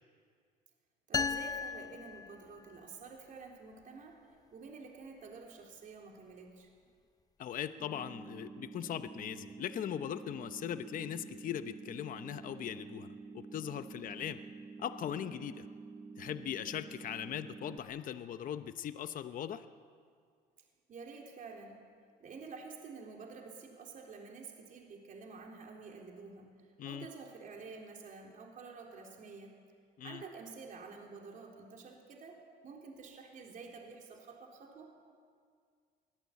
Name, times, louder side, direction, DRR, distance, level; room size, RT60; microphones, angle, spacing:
sound 1, 1.1-2.9, left 5 dB, 20° left, 0.6 m, -36 dB
voice 1, 1.1-6.7 13.9-14.2 15.3-15.5 20.9-21.8 22.2-26.6 26.8-29.6 30.0-35.0, right 4 dB, 50° right, 0 dB, 3.7 m, -49 dB
voice 2, 7.4-13.1 13.3-14.4 14.8-15.7 16.2-19.6 26.8-27.1 30.0-30.2, left 10 dB, 55° left, 10 dB, 0.9 m, -39 dB
sound 2, 7.8-17.8, right 4 dB, 25° right, 1.9 m, -49 dB
23.5 x 17.5 x 8.5 m, 2.1 s
cardioid pair, 110°, 17 cm